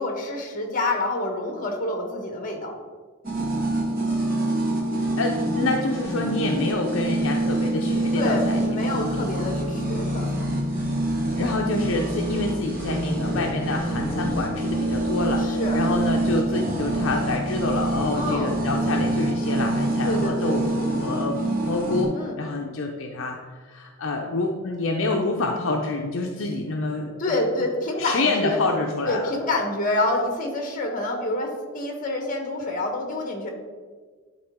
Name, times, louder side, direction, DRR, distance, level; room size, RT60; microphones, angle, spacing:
voice 1, 0.0-2.8 8.1-10.6 15.4-15.9 18.1-18.6 20.0-20.6 22.1-22.4 27.2-28.6 29.1-33.5, left 2 dB, 35° left, 3 dB, 1.2 m, -27 dB
sound 1, 3.2-22.0, right 1 dB, 40° right, 1.5 m, -26 dB
voice 2, 4.9-9.2 11.4-27.1 28.0-29.3, left 2 dB, 60° left, 1 dB, 0.5 m, -27 dB
11.0 x 4.3 x 3.6 m, 1.5 s
head